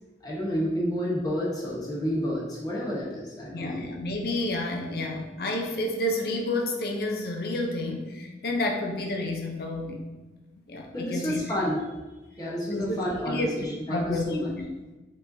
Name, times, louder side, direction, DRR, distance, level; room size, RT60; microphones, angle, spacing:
voice 1, 0.2-3.9 10.9-11.9 12.4-14.5, equal, 20° left, -5 dB, 0.8 m, -30 dB
voice 2, 3.5-10.0 10.7-11.4 12.7-13.0 13.2-14.7, left 1 dB, 55° left, 1 dB, 0.6 m, -30 dB
5.1 x 3.9 x 2.6 m, 1.1 s
head